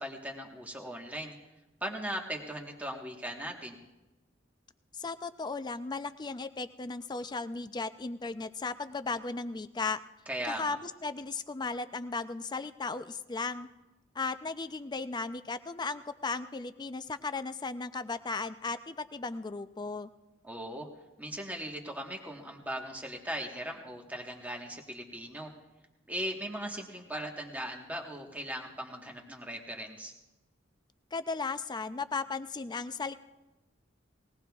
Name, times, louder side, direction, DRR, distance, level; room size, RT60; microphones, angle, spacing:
voice 1, 0.0-1.3 1.8-3.8 10.3-10.8 20.4-20.9 21.2-25.5 26.1-30.1, equal, 10° right, 0 dB, 1.3 m, -38 dB
voice 2, 4.9-10.0 10.4-13.7 14.2-20.1 31.1-33.1, left 4 dB, 20° left, 11 dB, 0.4 m, -36 dB
20.5 x 17.5 x 2.4 m, 1.0 s
head